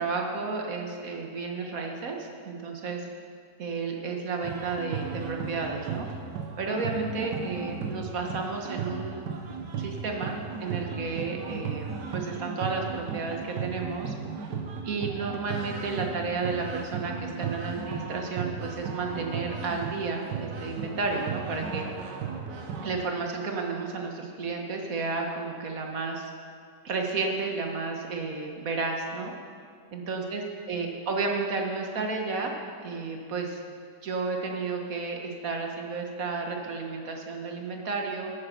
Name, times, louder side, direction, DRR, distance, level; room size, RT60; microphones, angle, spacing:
voice 1, 0.0-3.1 3.6-6.1 6.6-9.2 9.8-10.3 10.6-14.1 14.8-21.9 22.8-26.3 26.8-29.3 29.9-32.5 32.8-33.6 34.0-38.3, right 4 dB, 55° right, 2 dB, 1.6 m, -32 dB
sound 1, 4.4-22.9, right 5 dB, 85° right, 1.6 m, -35 dB
10.0 x 9.1 x 6.7 m, 2.1 s
omnidirectional pair, 1.8 m